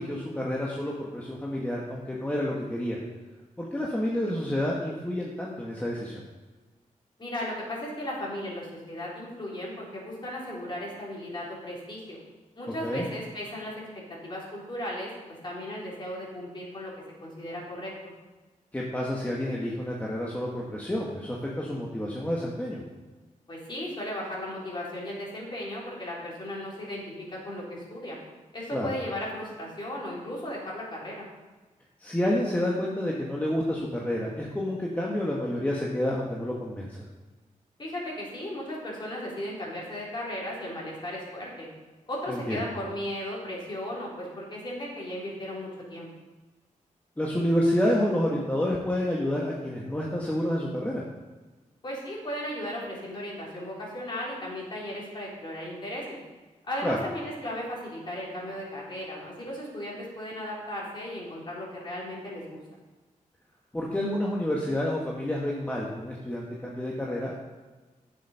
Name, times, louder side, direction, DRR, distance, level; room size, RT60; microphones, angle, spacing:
voice 1, 0.0-3.0 3.6-6.2 12.8-13.1 18.7-22.8 28.7-28.9 32.0-36.9 42.3-42.6 47.2-51.0 56.8-57.0 63.7-67.3, left 1 dB, 10° left, -3 dB, 1.4 m, -29 dB
voice 2, 7.2-12.2 12.6-13.7 14.2-16.9 17.2-17.9 23.5-28.2 28.5-31.3 37.8-41.7 42.1-46.1 51.8-56.2 56.7-62.6, left 1 dB, 35° left, -5 dB, 3.7 m, -36 dB
10.5 x 7.2 x 5.5 m, 1.2 s
wide cardioid pair, 105°, 13 cm